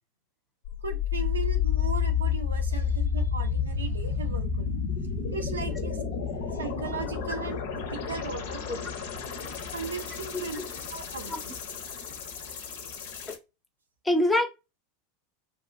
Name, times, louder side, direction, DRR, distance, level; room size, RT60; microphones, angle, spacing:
sound 1, 0.6-13.4, left 7 dB, 65° left, 0.6 m, -31 dB
voice 1, 0.8-4.7 5.0-6.0 6.3-9.3 9.7-10.6 10.9-11.5, right 4 dB, 80° right, 0.5 m, -37 dB
voice 2, 10.3-10.7 11.3-11.4 13.3-13.4 14.0-14.5, left 1 dB, 10° left, 0.7 m, -26 dB
2.7 x 2.6 x 2.4 m
figure-of-eight pair, 85°, 0 cm